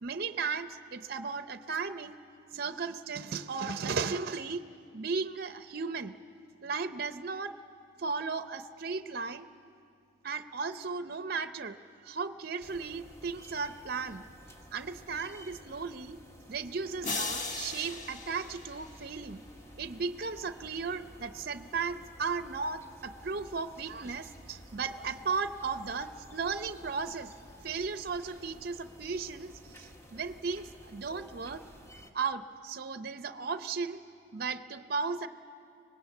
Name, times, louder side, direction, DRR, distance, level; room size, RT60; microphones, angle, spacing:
voice 1, 0.0-2.2 2.5-4.7 4.9-6.2 6.6-7.5 8.0-9.5 10.2-11.8 12.0-14.2 14.7-16.2 16.5-19.4 19.8-27.3 27.6-29.5 29.8-31.6 32.1-34.0 34.3-35.3, right 5 dB, 50° right, 10 dB, 0.6 m, -35 dB
sound 1, 12.6-32.1, equal, 15° left, 1.4 m, -53 dB
sound 2, 17.0-19.4, left 3 dB, 40° left, 1.5 m, -38 dB
24.5 x 19.5 x 8.2 m, 2.4 s
head